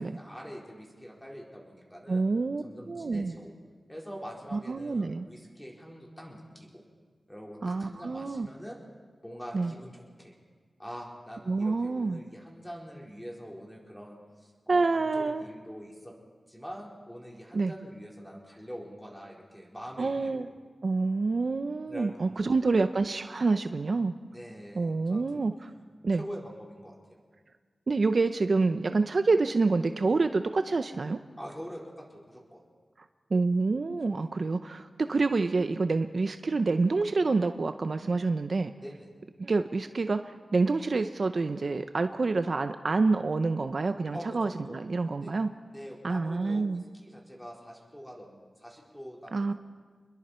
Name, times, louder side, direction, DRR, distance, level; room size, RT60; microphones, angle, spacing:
voice 1, 0.0-2.2 2.6-3.5 3.9-6.8 7.3-8.8 9.2-10.3 10.8-16.1 16.5-20.4 21.9-22.5 24.3-25.4 26.1-27.2 31.4-32.6 34.1-34.2 38.8-39.1 44.1-44.8 45.2-45.3 45.7-49.5, equal, 5° left, -2 dB, 4.5 m, -44 dB
voice 2, 2.1-3.3 4.5-5.3 7.6-8.5 9.5-9.7 11.5-12.2 14.7-15.4 17.5-17.7 20.0-20.5 20.8-24.1 24.8-25.5 26.0-26.2 27.9-31.2 33.3-38.7 39.4-45.5 46.0-46.8 49.3-49.5, right 3 dB, 55° right, 8 dB, 0.7 m, -27 dB
27.5 x 21.5 x 4.4 m, 1.5 s
wide cardioid pair, 95°, 0 cm